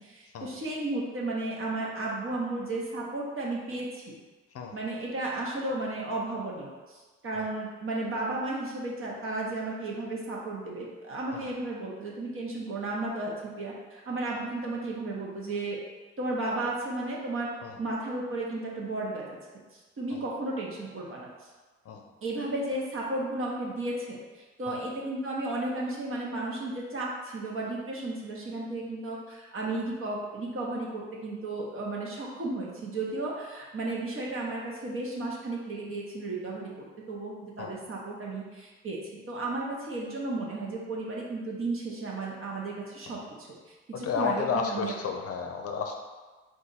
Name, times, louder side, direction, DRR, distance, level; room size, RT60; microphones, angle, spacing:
voice 1, 0.0-4.0 4.7-15.8 16.2-17.5 17.8-19.2 19.7-21.5 22.2-39.0 39.3-44.9, right 2 dB, 45° right, -3 dB, 1.1 m, -34 dB
voice 2, 43.9-45.9, left 5 dB, 50° left, 3 dB, 0.6 m, -32 dB
4.0 x 2.6 x 4.0 m, 1.3 s
cardioid pair, 90°, 30 cm